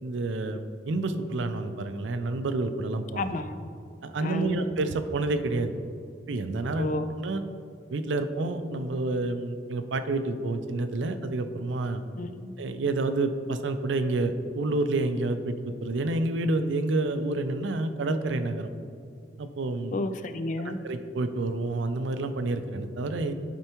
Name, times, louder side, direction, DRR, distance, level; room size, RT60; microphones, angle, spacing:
voice 1, 0.0-3.3 4.0-5.7 6.3-7.4 7.9-12.0 12.6-15.5 15.8-18.7 19.4-20.0 20.6-23.3, right 2 dB, 90° right, 8 dB, 0.5 m, -29 dB
voice 2, 3.2-3.7 4.2-4.6 6.8-7.1 12.2-12.5 19.9-20.8, left 2 dB, 45° left, 10 dB, 0.3 m, -31 dB
11.0 x 4.5 x 3.0 m, 2.3 s
head